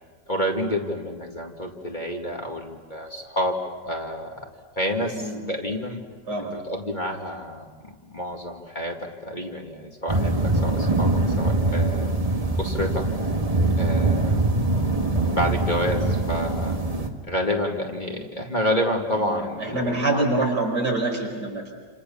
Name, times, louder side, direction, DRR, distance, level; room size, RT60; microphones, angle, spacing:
voice 1, 0.3-3.6 3.8-4.5 4.8-6.0 6.5-12.1 12.6-13.1 13.8-14.4 15.2-16.8 17.3-20.4, equal, 25° left, 1 dB, 2.2 m, -29 dB
voice 2, 5.1-5.5 6.3-6.5 14.3-14.5 19.2-21.7, right 2 dB, 75° right, -1 dB, 6.3 m, -26 dB
sound 1, 10.1-17.1, right 2 dB, 20° right, 1.7 m, -23 dB
29.0 x 28.0 x 7.1 m, 1.5 s
omnidirectional pair, 1.8 m